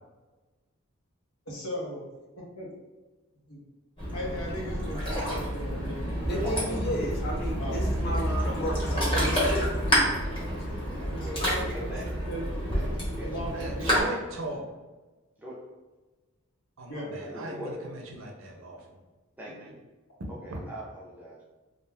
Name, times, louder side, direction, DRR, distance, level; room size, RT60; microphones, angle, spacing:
voice 1, 1.5-2.0 2.6-2.7 3.5-3.6 4.1-6.8 7.6-7.9 8.9-9.4 10.8-11.9 12.2-12.4 13.2-13.9 16.9-17.2, equal, 80° left, -4 dB, 0.9 m, -37 dB
Ocean, 4.0-14.0, equal, 25° left, 0.9 m, -29 dB
voice 2, 6.3-9.9 10.2-10.9, equal, 45° left, -1 dB, 0.6 m, -34 dB
voice 3, 11.1-12.2 12.7-12.9 13.2-14.1 15.4-15.6 17.2-17.8 19.4-19.8 20.3-21.4, equal, 5° right, -5 dB, 0.4 m, -41 dB
voice 4, 13.5-14.7 15.6-15.7 16.8-19.0 19.6-19.7 20.5-20.6, right 1 dB, 60° right, 1 dB, 0.5 m, -39 dB
2.4 x 2.2 x 3.3 m, 1.2 s
head